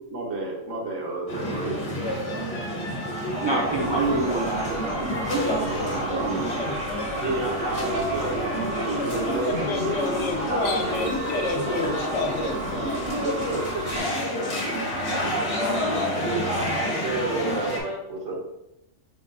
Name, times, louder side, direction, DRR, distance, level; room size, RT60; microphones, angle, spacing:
voice 1, 0.1-1.8 7.2-10.0 10.4-11.0 11.3-11.8 13.2-13.8 15.1-15.8 16.1-18.4, right 2 dB, 80° right, -2 dB, 1.4 m, -30 dB
sound 1, 1.3-17.8, equal, 30° left, 0.8 m, -29 dB
voice 2, 3.1-6.9, right 2 dB, 40° right, -3 dB, 0.4 m, -28 dB
sound 2, 3.7-14.0, right 3 dB, 60° right, 1.2 m, -36 dB
voice 3, 6.5-6.8 9.4-13.3, left 3 dB, 70° left, 3 dB, 1.0 m, -29 dB
6.9 x 2.5 x 2.3 m, 0.85 s
omnidirectional pair, 1.3 m